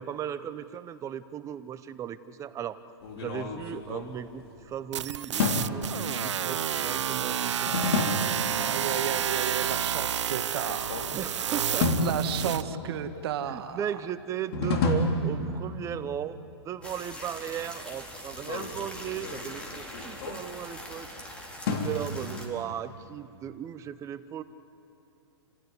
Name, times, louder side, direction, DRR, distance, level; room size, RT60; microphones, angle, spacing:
voice 1, 0.0-2.8 3.2-7.8 11.1-12.1 12.4-12.5 13.4-21.1 21.6-24.4, right 10 dB, 20° right, 13 dB, 0.7 m, -37 dB
sound 1, 3.0-4.8 5.4-6.0 7.7-8.5 10.5-11.3 11.8-12.9 14.5-15.9 18.3-20.8 21.7-22.6, left 2 dB, 55° left, 3.5 m, -30 dB
sound 2, 4.9-12.6, right 9 dB, 85° right, 0.5 m, -30 dB
voice 2, 8.6-11.0 12.0-13.8, right 9 dB, 60° right, 9 dB, 1.5 m, -33 dB
sound 3, 16.8-22.5, equal, 5° left, 3.7 m, -42 dB
29.0 x 16.0 x 9.7 m, 2.7 s
hypercardioid pair, 135°, 15 cm